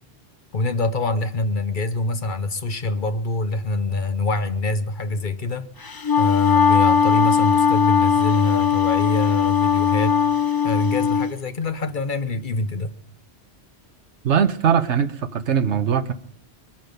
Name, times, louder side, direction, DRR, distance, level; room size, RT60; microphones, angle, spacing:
voice 1, 0.5-5.7 6.2-10.2 10.6-12.9, left 3 dB, 50° left, 1.0 m, -25 dB
Wind instrument woodwind instrument, 5.8-11.3, left 7 dB, 30° left, 0.4 m, -19 dB
voice 2, 14.2-16.1, right 7 dB, 85° right, 1.3 m, -20 dB
23.0 x 8.9 x 5.2 m
omnidirectional pair, 1.1 m